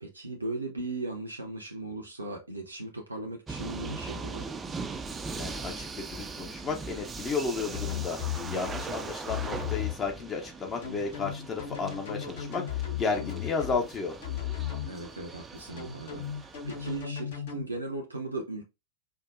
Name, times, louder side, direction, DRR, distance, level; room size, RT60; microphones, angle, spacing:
voice 1, 0.0-4.5 8.5-9.0 14.8-18.6, right 2 dB, 80° right, 0.5 m, -38 dB
sound 1, 3.5-17.0, right 4 dB, 15° right, 0.4 m, -40 dB
voice 2, 5.4-8.2 8.5-14.2, left 4 dB, 25° left, 0.7 m, -33 dB
sound 2, 7.7-8.9 9.3-9.9 10.8-13.8 14.2-14.9 15.8-17.6, left 10 dB, 60° left, 1.0 m, -35 dB
4.6 x 2.2 x 2.4 m
figure-of-eight pair, 90°, 0 cm